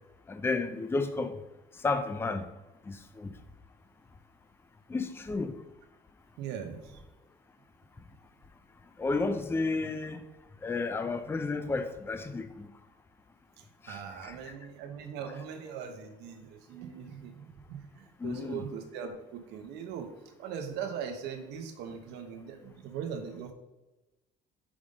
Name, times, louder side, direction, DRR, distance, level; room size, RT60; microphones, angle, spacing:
voice 1, 0.3-1.4 1.8-2.5 2.9-3.3 4.9-5.6 9.0-10.2 10.6-12.7 13.8-14.4 18.2-18.6, left 3 dB, 15° left, 10 dB, 0.4 m, -32 dB
voice 2, 6.4-7.0 13.6-20.1 20.4-23.5, right 7 dB, 85° right, 6 dB, 0.9 m, -40 dB
5.0 x 3.7 x 5.2 m, 1.0 s
cardioid pair, 110°, 17 cm